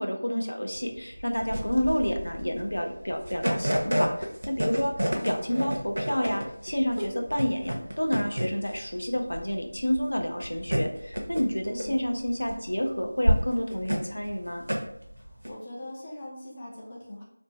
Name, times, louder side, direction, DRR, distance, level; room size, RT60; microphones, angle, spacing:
voice 1, 0.0-14.6, equal, 90° left, 3 dB, 0.5 m, -29 dB
sound 1, 0.7-15.5, equal, 75° right, 0.6 m, -30 dB
voice 2, 1.7-2.2 5.1-5.5 11.6-12.0 15.2-17.2, left 1 dB, 20° left, -4 dB, 0.4 m, -42 dB
2.5 x 2.1 x 2.9 m, 0.73 s
figure-of-eight pair, 175°, 0 cm